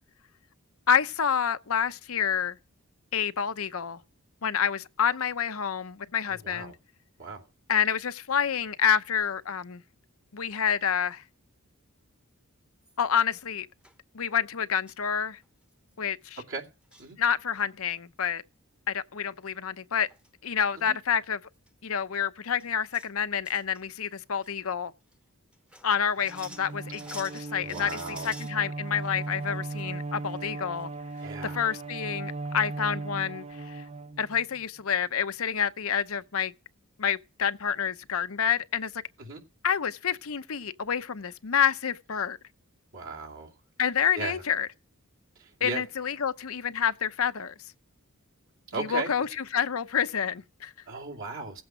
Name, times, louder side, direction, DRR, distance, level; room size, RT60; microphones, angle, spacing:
voice 1, 0.9-2.6 3.1-4.0 4.4-6.7 7.7-9.8 10.3-11.2 13.0-13.7 14.1-15.4 16.0-16.4 17.2-18.4 18.9-20.1 20.4-21.4 21.8-24.9 25.8-30.9 31.4-33.8 34.2-36.5 37.0-38.9 39.6-42.4 43.8-44.7 45.6-47.5 48.7-50.7, left 7 dB, 70° left, 0.7 m, -28 dB
voice 2, 6.3-6.8 7.2-7.5 16.5-16.7 17.0-17.2 20.8-21.0 27.5-28.3 31.2-31.6 39.2-39.4 42.9-43.5 44.1-44.4 45.4-45.8 48.7-49.1 50.9-51.6, right 3 dB, 60° right, 2.6 m, -37 dB
sound 1, 12.8-13.2 13.8-14.0 14.9-15.1 15.4-15.5 15.7-15.9 16.6-17.1 17.5-17.9 19.7-19.8 20.0-20.3 20.7-20.8 21.5-21.7 22.1-22.2 22.6-23.1 23.4-24.1 24.4-24.5 25.1-25.2 25.5-28.6 29.0-29.9 30.2-30.3 30.8-30.9 31.2-31.3, equal, 5° right, 1.0 m, -48 dB
Bowed string instrument, 26.2-34.6, right 3 dB, 30° right, 0.6 m, -37 dB
16.5 x 7.9 x 5.0 m
head